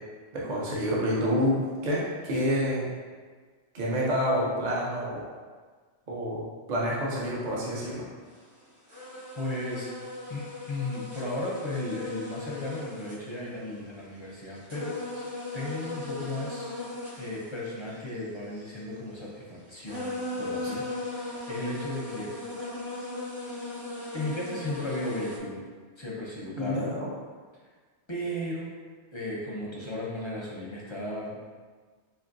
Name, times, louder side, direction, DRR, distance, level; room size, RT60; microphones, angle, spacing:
voice 1, 0.3-2.9 3.7-5.2 6.1-6.4 6.7-8.0 26.6-27.1, equal, 45° right, -5 dB, 0.7 m, -28 dB
sound 1, 8.4-8.5 8.9-13.9 14.3-18.7 19.5-19.6 19.9-25.4, left 2 dB, 60° right, 1.4 m, -38 dB
voice 2, 9.4-9.9 10.3-16.7 17.2-22.3 24.1-25.6 26.0-26.9 28.1-28.7 29.1-31.4, left 1 dB, 35° left, -5 dB, 0.5 m, -35 dB
4.3 x 2.8 x 2.5 m, 1.5 s
omnidirectional pair, 1.2 m